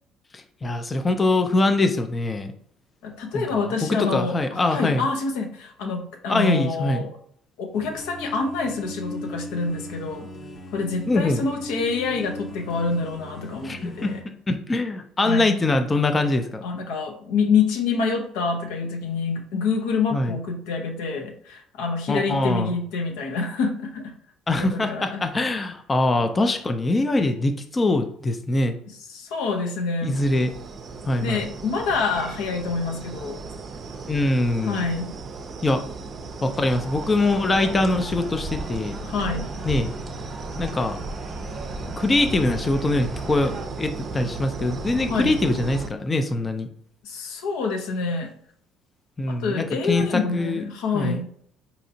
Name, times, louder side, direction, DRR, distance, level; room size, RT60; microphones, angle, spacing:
voice 1, 0.3-2.5 3.3-5.0 6.3-7.1 11.1-11.4 13.6-14.1 14.5-16.6 20.1-20.4 22.1-22.7 24.5-28.8 30.0-30.5 31.1-31.5 34.1-34.9 35.6-35.8 36.4-38.9 39.7-39.9 40.6-41.0 42.0-46.7 49.2-50.6 50.9-51.2, left 2 dB, 25° left, 7 dB, 0.5 m, -23 dB
voice 2, 3.0-7.1 7.6-10.3 10.7-14.2 15.2-15.6 16.6-24.1 24.6-25.2 29.1-30.2 31.2-33.4 34.6-35.1 39.0-39.5 45.1-45.3 47.0-48.3 49.3-51.2, left 4 dB, 80° left, 3 dB, 0.7 m, -27 dB
sound 1, 7.7-14.2, left 1 dB, 45° left, 0.8 m, -38 dB
sound 2, 30.1-45.9, right 4 dB, 45° right, 0.5 m, -36 dB
sound 3, 36.2-43.7, right 1 dB, 25° right, 0.9 m, -36 dB
4.0 x 2.8 x 2.7 m, 0.62 s
supercardioid pair, 80°, 0 cm